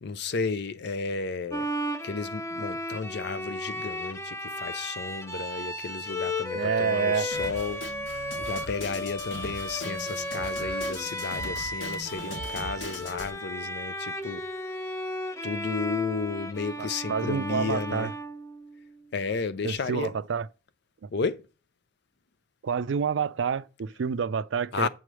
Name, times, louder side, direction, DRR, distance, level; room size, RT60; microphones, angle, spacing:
voice 1, 0.0-1.6 2.0-7.8 8.4-14.4 15.4-18.1 19.1-20.1 21.1-21.4 24.7-24.9, left 4 dB, 65° left, 0.5 m, -33 dB
Bowed string instrument, 1.5-18.9, equal, 15° left, 0.6 m, -34 dB
voice 2, 6.5-7.3 16.8-18.1 19.6-20.5 21.0-21.1 22.6-24.9, right 6 dB, 75° right, 0.4 m, -28 dB
Drum kit, 7.3-13.3, left 1 dB, 80° left, 1.6 m, -40 dB
7.7 x 3.3 x 6.1 m
head